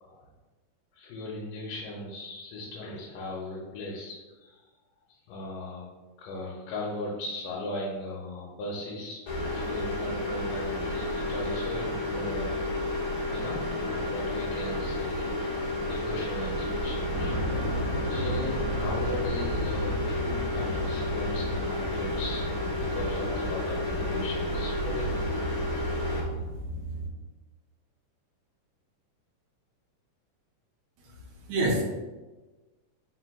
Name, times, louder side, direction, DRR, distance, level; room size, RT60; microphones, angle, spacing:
voice 1, 0.9-4.7 5.3-5.9 6.2-9.2 9.5-12.8 13.3-17.3 18.1-25.3, left 1 dB, 80° left, -4 dB, 2.2 m, -38 dB
sound 1, 9.3-26.2, left 1 dB, 45° left, 1.3 m, -31 dB
sound 2, 17.1-27.1, equal, 90° right, 2.4 m, -34 dB
voice 2, 31.0-31.8, right 1 dB, 70° right, -1 dB, 1.9 m, -28 dB
4.5 x 4.5 x 2.3 m, 1.2 s
omnidirectional pair, 3.8 m